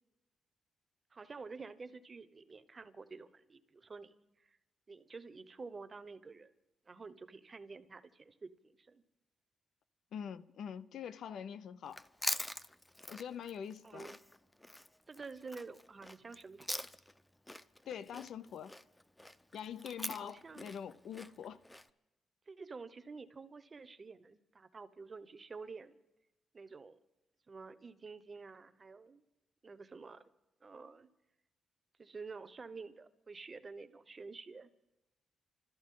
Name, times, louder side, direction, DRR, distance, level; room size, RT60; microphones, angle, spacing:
voice 1, 1.1-4.1 4.4-4.6 4.9-6.5 6.9-9.0 13.8-14.2 15.1-16.9 20.2-20.7 22.5-26.0 26.5-27.0 27.5-29.2 29.6-30.2 30.6-31.1 32.0-34.7, right 4 dB, 35° right, 0.9 m, -49 dB
voice 2, 10.1-12.0 13.1-14.2 17.9-18.7 19.5-21.6, left 8 dB, 75° left, 0.6 m, -44 dB
Chewing mastication, 11.9-17.2 17.5-21.9, left 1 dB, 10° left, 0.6 m, -43 dB
28.5 x 13.5 x 3.8 m
cardioid pair, 105°, 0 cm